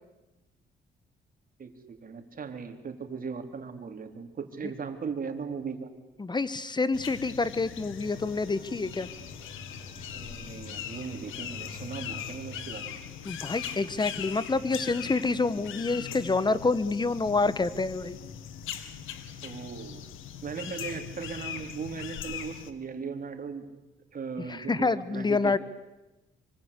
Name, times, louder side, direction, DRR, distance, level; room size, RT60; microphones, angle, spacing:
voice 1, 1.6-5.9 10.1-13.0 19.4-20.1 20.4-23.7 24.1-25.6, right 5 dB, 45° right, 5 dB, 3.9 m, -38 dB
voice 2, 6.2-9.1 13.2-18.2 24.5-25.6, left 3 dB, 20° left, 16 dB, 1.4 m, -27 dB
sound 1, 6.9-22.7, left 9 dB, 85° left, 2.0 m, -40 dB
sound 2, 8.0-13.2, left 1 dB, 55° left, 7.9 m, -48 dB
25.5 x 25.0 x 8.6 m, 1.0 s
cardioid pair, 90°, 20 cm